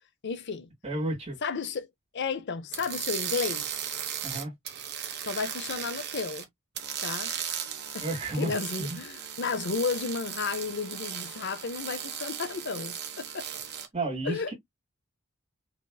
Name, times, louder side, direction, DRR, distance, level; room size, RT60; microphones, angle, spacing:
voice 1, 0.2-0.7 1.4-1.9 2.1-3.7 5.3-6.5 7.0-7.3 7.9-8.1 8.3-13.5 14.2-14.5, left 5 dB, 55° left, 0.6 m, -33 dB
voice 2, 0.8-1.4 4.2-4.5 8.0-8.5 8.8-9.0 13.9-14.5, right 2 dB, 30° right, 2.5 m, -31 dB
sound 1, 2.7-6.4 6.7-13.9, right 9 dB, 55° right, 1.3 m, -36 dB
4.9 x 3.4 x 2.3 m
head